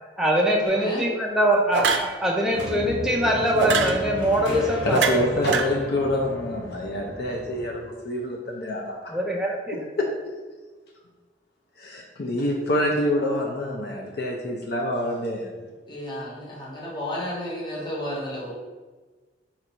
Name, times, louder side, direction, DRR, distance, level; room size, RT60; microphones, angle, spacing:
voice 1, 0.2-5.2 9.1-9.8, equal, 5° right, -2 dB, 0.3 m, -23 dB
sound 1, 0.7-0.9 1.7-2.1 3.6-4.0 4.9-5.6, right 5 dB, 75° right, 0.4 m, -23 dB
sound 2, 2.5-7.7, left 1 dB, 85° left, 1.1 m, -34 dB
voice 2, 4.8-9.0 9.7-10.1 11.8-15.5, left 1 dB, 60° left, 0 dB, 0.5 m, -26 dB
voice 3, 15.9-18.5, left 1 dB, 25° left, -4 dB, 0.9 m, -32 dB
4.3 x 2.5 x 4.4 m, 1.3 s
head